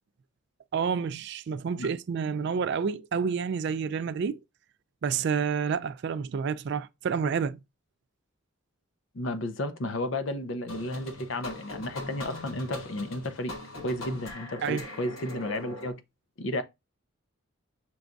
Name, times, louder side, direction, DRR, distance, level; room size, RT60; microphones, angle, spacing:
voice 1, 0.7-4.4 5.0-7.6 14.6-14.8, right 6 dB, 55° right, 0.3 m, -29 dB
voice 2, 9.1-13.6 13.8-16.0 16.4-16.6, left 1 dB, 60° left, 0.6 m, -33 dB
sound 1, 10.7-15.9, left 2 dB, 85° left, 1.4 m, -41 dB
6.0 x 2.3 x 3.8 m
head